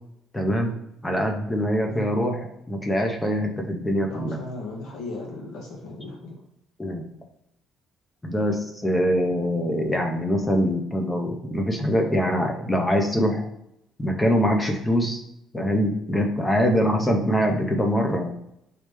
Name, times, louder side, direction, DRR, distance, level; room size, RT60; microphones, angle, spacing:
voice 1, 0.3-0.7 1.0-4.4 6.8-7.0 8.2-13.4 14.0-15.2 15.5-18.3, equal, 10° left, 2 dB, 0.6 m, -23 dB
voice 2, 4.1-6.4, left 2 dB, 70° left, -1 dB, 1.5 m, -36 dB
4.9 x 3.1 x 3.3 m, 0.81 s
cardioid pair, 165°, 0 cm